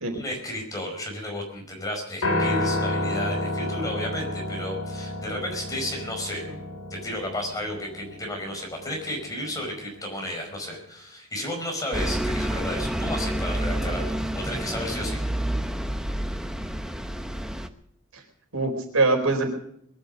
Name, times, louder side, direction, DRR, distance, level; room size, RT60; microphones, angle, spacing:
voice 1, 0.1-6.5 6.9-15.2, left 1 dB, 15° left, 1 dB, 5.0 m, -33 dB
Piano, 2.2-10.5, left 1 dB, 70° left, 6.2 m, -31 dB
Bus, 11.9-17.7, right 1 dB, 5° right, 0.9 m, -28 dB
voice 2, 18.5-19.5, right 3 dB, 75° right, 4 dB, 4.4 m, -24 dB
22.0 x 12.0 x 5.3 m, 0.69 s
head